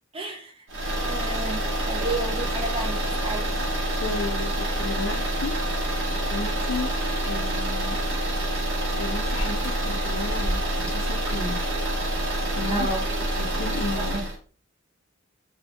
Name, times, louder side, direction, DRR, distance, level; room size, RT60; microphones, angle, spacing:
voice 1, 0.1-0.7 1.1-3.6 12.7-13.1 14.0-14.2, right 2 dB, 25° right, 0.7 m, -32 dB
sound 1, 0.7-14.4, right 1 dB, 60° right, 1.0 m, -27 dB
voice 2, 4.0-5.6 6.3-6.9 7.3-8.0 9.0-11.7 12.5-12.9 13.4-14.2, left 3 dB, 65° left, 0.5 m, -33 dB
2.7 x 2.5 x 3.4 m
head